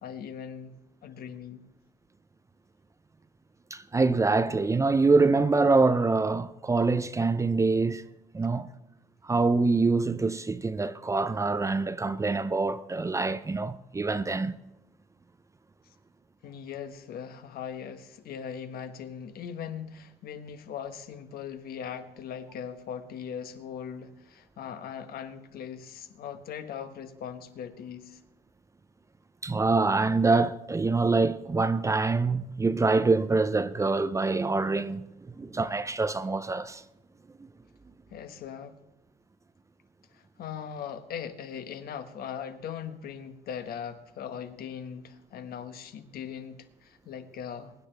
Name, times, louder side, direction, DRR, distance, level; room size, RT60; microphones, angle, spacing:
voice 1, 0.0-1.7 16.4-28.2 38.1-38.8 40.1-47.7, left 8 dB, 65° left, 1.2 m, -40 dB
voice 2, 3.7-8.0 8.3-8.7 9.2-14.6 29.4-35.0 35.4-36.8, right 3 dB, 20° right, 0.5 m, -25 dB
23.0 x 9.8 x 3.4 m
cardioid pair, 110°, 17 cm